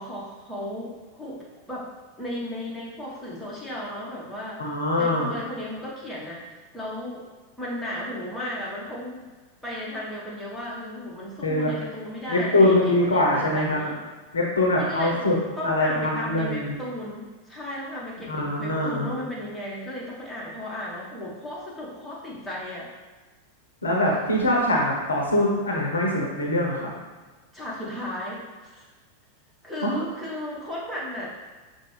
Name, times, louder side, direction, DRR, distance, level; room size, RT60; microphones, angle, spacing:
voice 1, 0.0-1.9 2.2-7.2 7.6-9.3 9.6-14.0 14.8-15.2 15.6-22.9 27.5-28.9 29.6-31.3, left 1 dB, 5° left, -7 dB, 1.2 m, -35 dB
voice 2, 4.6-5.3 11.4-11.7 12.3-13.9 14.3-15.3 15.6-16.7 18.3-19.1 23.8-26.9 29.8-30.1, left 1 dB, 70° left, -2 dB, 0.7 m, -23 dB
5.8 x 2.3 x 3.2 m, 1.3 s
figure-of-eight pair, 90°, 0 cm